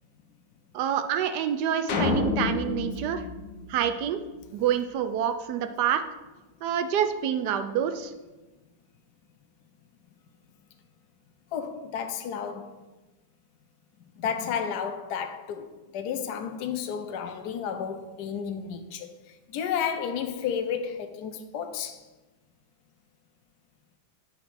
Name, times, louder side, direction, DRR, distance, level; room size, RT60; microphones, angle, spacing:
voice 1, 0.7-3.2 3.7-4.2 4.5-6.0 6.6-8.1, right 9 dB, 75° right, 1.2 m, -27 dB
sound 1, 1.9-4.3, left 4 dB, 90° left, 1.7 m, -29 dB
voice 2, 11.5-12.7 14.2-19.1 19.5-22.0, left 7 dB, 75° left, 1.2 m, -32 dB
8.5 x 4.5 x 5.9 m
omnidirectional pair, 1.9 m